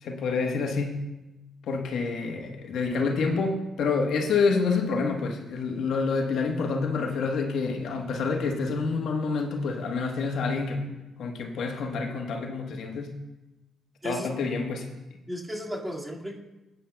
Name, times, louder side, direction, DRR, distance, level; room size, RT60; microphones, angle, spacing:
voice 1, 0.0-1.1 1.7-10.9 11.2-13.2 14.0-14.9, left 4 dB, 70° left, 2 dB, 1.2 m, -28 dB
voice 2, 15.3-16.4, equal, 10° right, -3 dB, 2.1 m, -34 dB
19.5 x 9.1 x 2.3 m, 1.0 s
cardioid pair, 90°, 0 cm